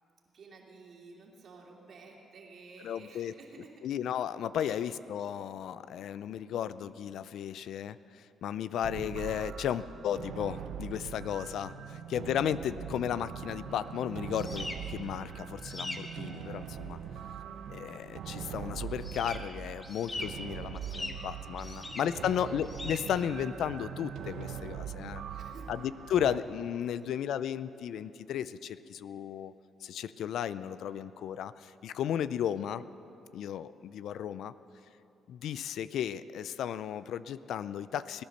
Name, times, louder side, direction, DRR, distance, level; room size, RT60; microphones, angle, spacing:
voice 1, 0.3-3.9 4.6-4.9 21.7-22.0 22.2-22.6 25.3-25.8 26.9-27.1, right 4 dB, 60° right, -1 dB, 2.7 m, -53 dB
voice 2, 2.8-3.3 3.8-17.0 17.7-25.2 25.7-29.5 29.8-32.9 33.3-34.5 35.3-38.2, left 9 dB, 75° left, 15 dB, 0.4 m, -34 dB
sound 1, 8.8-26.4, right 8 dB, 75° right, 0.8 m, -42 dB
sound 2, 13.7-26.9, left 2 dB, 25° left, 1.3 m, -45 dB
18.5 x 10.5 x 6.6 m, 2.9 s
cardioid pair, 90°, 0 cm